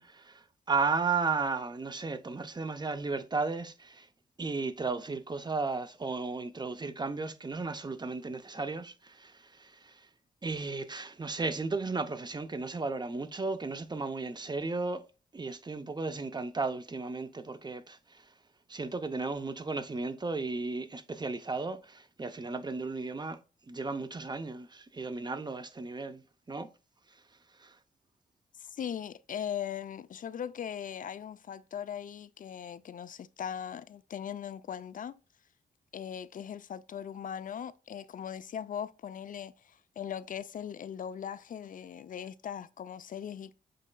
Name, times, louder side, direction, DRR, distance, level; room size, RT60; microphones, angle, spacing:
voice 1, 0.0-4.1 4.4-9.9 10.4-15.0 15.3-18.2 18.7-23.4 23.7-26.2 26.5-26.7 27.6-27.7, right 4 dB, 25° right, 0.6 m, -34 dB
voice 2, 28.6-35.2 35.9-43.5, left 8 dB, 50° left, 0.4 m, -39 dB
7.5 x 3.0 x 2.2 m
cardioid pair, 60°, 18 cm